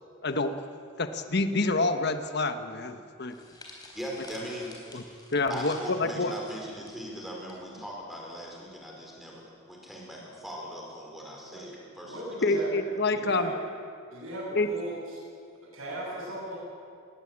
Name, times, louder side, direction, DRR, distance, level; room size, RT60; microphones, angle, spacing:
voice 1, 0.2-0.5 1.0-3.4 4.9-5.0 5.3-6.3 12.4-13.5 14.5-14.7, left 2 dB, 50° left, 8 dB, 1.2 m, -27 dB
sound 1, 3.3-7.6 7.8-8.1 8.9-9.2, left 2 dB, 20° left, 4.0 m, -50 dB
voice 2, 3.9-4.7 5.1-5.2 5.5-12.2, equal, ahead, -2 dB, 4.9 m, -40 dB
voice 3, 12.0-12.7 13.1-13.5 14.1-15.2 15.7-16.6, equal, 75° right, -9 dB, 7.8 m, -37 dB
21.0 x 19.0 x 8.7 m, 2.3 s
head